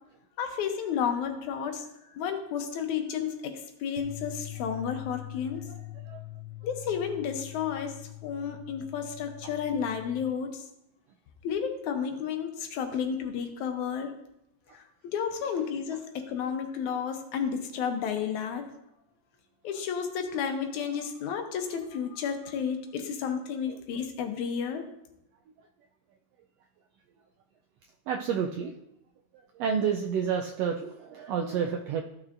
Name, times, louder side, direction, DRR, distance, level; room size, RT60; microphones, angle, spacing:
voice 1, 0.4-1.9 2.2-3.5 3.8-5.6 6.6-7.9 8.2-10.6 11.4-14.1 14.7-14.8 15.1-18.7 19.6-24.8, left 7 dB, 80° left, 5 dB, 2.3 m, -32 dB
sound 1, 4.0-10.2, left 16 dB, 65° right, 1.1 m, -43 dB
voice 2, 5.7-6.2 9.4-9.5 12.9-13.0 14.7-14.8 23.7-23.8 28.1-28.7 29.5-32.0, right 7 dB, 80° right, 3 dB, 1.4 m, -30 dB
14.5 x 6.1 x 2.6 m, 0.80 s
omnidirectional pair, 3.4 m